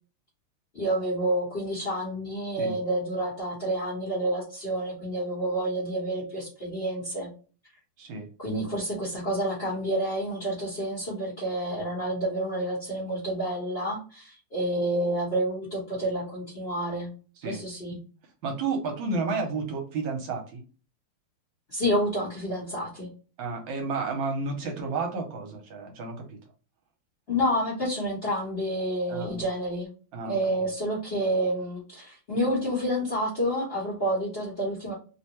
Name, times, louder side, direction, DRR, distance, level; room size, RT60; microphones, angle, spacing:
voice 1, 0.7-7.3 8.4-17.1 17.4-18.0 21.7-23.1 27.3-29.9 30.2-34.9, right 1 dB, 40° left, -5 dB, 1.0 m, -29 dB
voice 2, 8.0-8.3 17.4-17.6 18.4-20.6 23.4-26.4 29.1-29.4 30.1-30.4, right 4 dB, 75° right, 3 dB, 1.4 m, -31 dB
3.4 x 2.1 x 2.8 m, 0.36 s
omnidirectional pair, 2.3 m